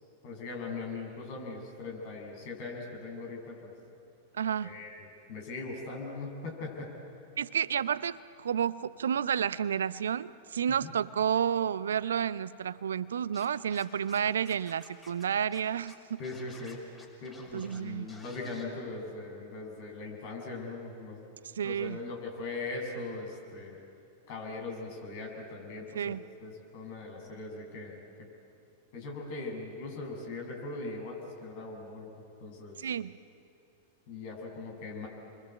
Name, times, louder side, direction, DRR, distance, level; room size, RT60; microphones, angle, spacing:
voice 1, 0.2-3.7 4.6-6.9 10.7-10.9 16.2-16.8 17.2-21.2 21.6-23.8 24.3-28.0 28.9-32.1 32.4-32.9 34.1-35.1, left 3 dB, 55° left, 0 dB, 7.0 m, -40 dB
voice 2, 4.3-4.7 7.4-16.2 17.5-18.1 21.6-22.0 25.9-26.2 32.8-33.2, right 8 dB, 70° right, 17 dB, 0.6 m, -31 dB
Scratching (performance technique), 13.3-14.2 14.4-15.2 15.5-15.6 15.9-17.8 18.1-18.6, left 2 dB, 10° left, 5.7 m, -53 dB
29.5 x 23.5 x 8.3 m, 2.6 s
figure-of-eight pair, 95°, 0 cm